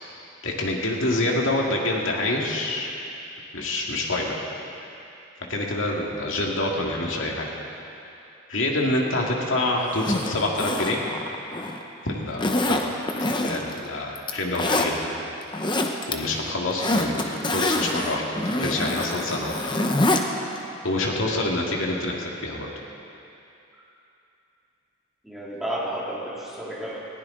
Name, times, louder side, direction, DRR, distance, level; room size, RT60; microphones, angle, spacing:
voice 1, 0.4-2.9 3.5-4.4 5.5-7.5 8.5-11.0 12.0-13.0 13.4-15.1 16.1-18.2 18.6-19.8 20.8-22.7, left 2 dB, 70° left, -1 dB, 2.1 m, -26 dB
Zipper (clothing), 9.9-11.8 12.4-13.8 14.2-14.9 15.4-16.1 16.5-20.2 20.6-20.7, left 2 dB, 20° left, 0.8 m, -25 dB
voice 2, 25.2-27.0, right 1 dB, ahead, -7 dB, 2.5 m, -32 dB
20.0 x 15.5 x 3.9 m, 2.8 s
head